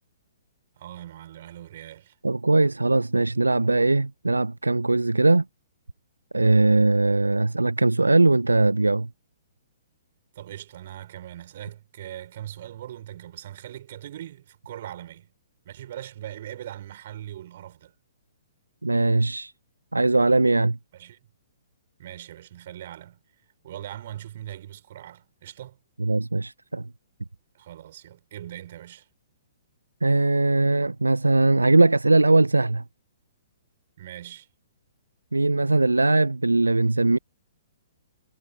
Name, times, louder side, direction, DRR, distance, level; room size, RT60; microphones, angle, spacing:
voice 1, 0.8-2.2 10.3-15.3 15.6-17.9 20.9-21.2 22.0-23.2 23.6-25.8 27.5-29.1 34.0-34.5, right 12 dB, 50° right, 5.9 m, -40 dB
voice 2, 2.2-5.4 6.3-9.1 18.8-19.5 19.9-20.8 26.0-26.9 30.0-32.8 35.3-37.2, right 2 dB, 85° right, 0.6 m, -20 dB
figure-of-eight pair, 120°, 0 cm